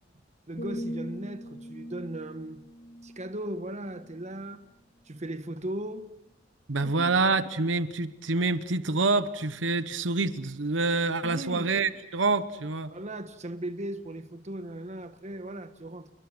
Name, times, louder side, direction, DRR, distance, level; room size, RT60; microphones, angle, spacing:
voice 1, 0.5-2.6 3.0-4.6 5.1-6.1 6.8-7.1 11.2-11.7 12.9-16.1, right 1 dB, 40° right, 1.2 m, -37 dB
sound 1, 0.6-4.5 5.0-5.3, equal, 50° left, 2.4 m, -41 dB
voice 2, 6.7-12.9, right 3 dB, 80° right, 1.0 m, -27 dB
29.0 x 22.5 x 6.2 m
head